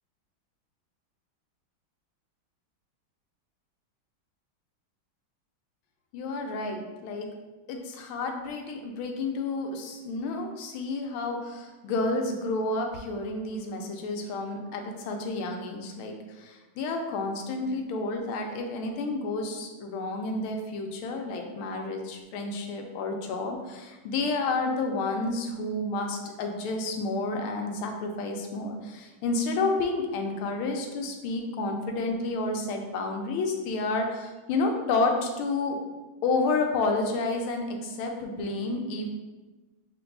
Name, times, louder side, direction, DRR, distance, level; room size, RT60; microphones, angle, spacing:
voice 1, 6.1-7.3 7.7-35.8 36.2-39.1, left 3 dB, 85° left, 3 dB, 1.5 m, -30 dB
6.8 x 2.6 x 2.5 m, 1.2 s
omnidirectional pair, 2.2 m